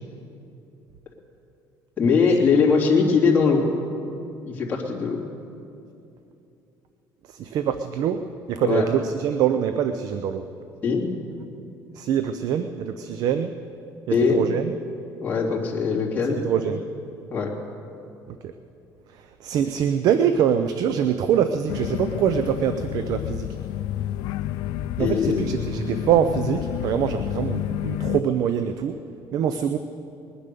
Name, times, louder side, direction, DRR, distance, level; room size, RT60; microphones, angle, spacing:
voice 1, 2.0-3.6 4.5-5.2 8.6-8.8 10.8-11.1 14.1-14.4 15.2-16.4 17.3-17.5 25.0-25.5, left 5 dB, 25° left, -5 dB, 3.1 m, -21 dB
voice 2, 7.3-10.5 11.9-13.5 14.1-14.7 16.4-16.9 18.3-18.5 19.1-23.5 25.0-29.0 29.3-29.8, right 8 dB, 60° right, 9 dB, 0.6 m, -24 dB
sound 1, 21.7-28.2, left 13 dB, 80° left, 0.4 m, -30 dB
21.0 x 10.0 x 6.8 m, 2.7 s
cardioid pair, 145°, 7 cm